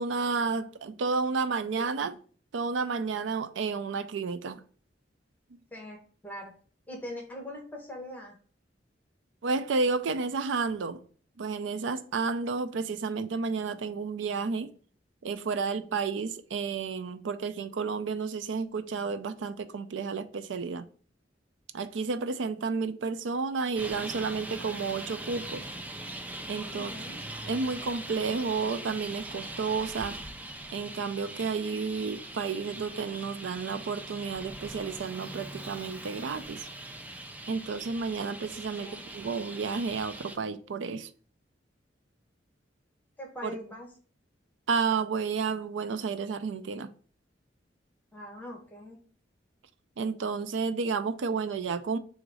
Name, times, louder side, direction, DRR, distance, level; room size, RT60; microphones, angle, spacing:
voice 1, 0.0-2.2 2.5-4.6 5.5-5.6 9.4-11.0 11.4-14.7 15.2-20.9 21.7-25.7 26.5-26.9 27.5-30.2 30.7-36.7 37.5-41.1 43.4-43.6 44.7-46.9 50.0-52.0, right 4 dB, 80° right, 0.4 m, -31 dB
voice 2, 5.7-6.6 6.9-8.4 26.7-27.2 38.8-39.0 43.2-43.9 48.1-49.0, left 1 dB, 10° left, 1.0 m, -42 dB
Traffic noise roadway noise, 23.7-40.4, right 1 dB, 10° right, 0.3 m, -41 dB
3.9 x 2.6 x 4.6 m
head